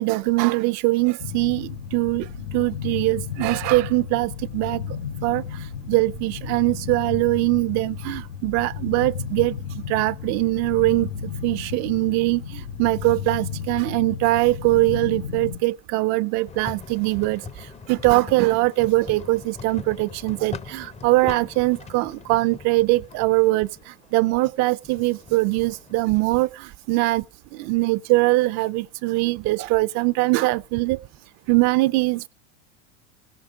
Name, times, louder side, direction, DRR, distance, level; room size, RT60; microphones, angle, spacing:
voice 1, 0.0-2.3 2.5-4.8 5.2-5.4 5.9-9.6 9.9-11.1 11.4-27.2 27.5-31.0 31.5-32.3, right 21 dB, 50° right, 0.5 m, -22 dB
sound 1, 1.2-15.6, left 7 dB, 85° left, 1.0 m, -33 dB
sound 2, 16.5-26.0, left 5 dB, 20° left, 0.6 m, -41 dB
17.0 x 5.7 x 4.9 m
supercardioid pair, 110°, 36 cm